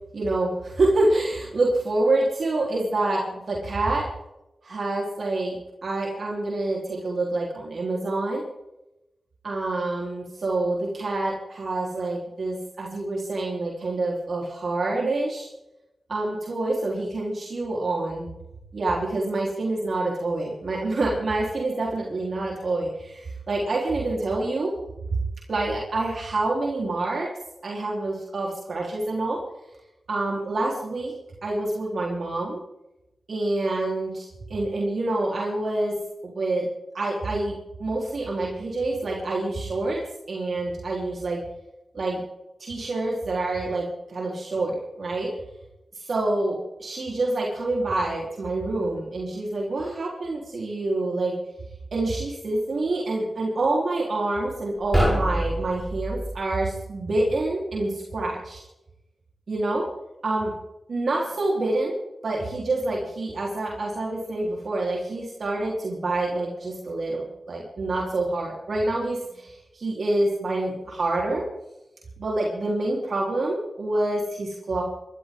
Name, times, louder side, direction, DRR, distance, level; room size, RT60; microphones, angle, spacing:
voice 1, 0.1-4.1 4.6-8.4 9.4-15.5 16.1-18.3 18.7-24.7 25.5-27.3 27.6-29.4 30.1-31.1 31.4-32.6 33.3-35.9 36.2-36.7 36.9-37.5 37.8-40.0 40.3-41.4 41.9-42.2 42.6-45.3 45.9-51.3 51.9-58.6 59.5-59.8 60.2-60.5 60.9-61.9 62.2-71.4 72.2-74.8, right 2 dB, 65° right, -3 dB, 4.2 m, -27 dB
sound 1, 54.7-56.4, equal, 10° right, 8.0 m, -25 dB
23.5 x 13.5 x 3.9 m, 0.92 s
cardioid pair, 75°, 0 cm